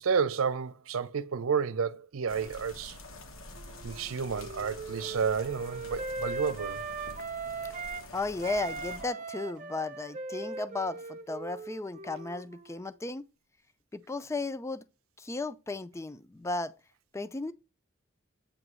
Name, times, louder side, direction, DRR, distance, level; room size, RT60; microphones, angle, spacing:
voice 1, 0.0-3.0 3.8-6.8, right 6 dB, 85° right, 0.6 m, -31 dB
sound 1, 2.3-9.0, left 2 dB, 80° left, 1.1 m, -47 dB
Wind instrument woodwind instrument, 3.5-8.1 8.4-12.9, right 3 dB, 40° right, 0.7 m, -39 dB
voice 2, 8.1-13.2 13.9-14.8 15.2-16.7 17.1-17.5, left 3 dB, 15° left, 0.4 m, -35 dB
8.7 x 3.0 x 6.1 m
head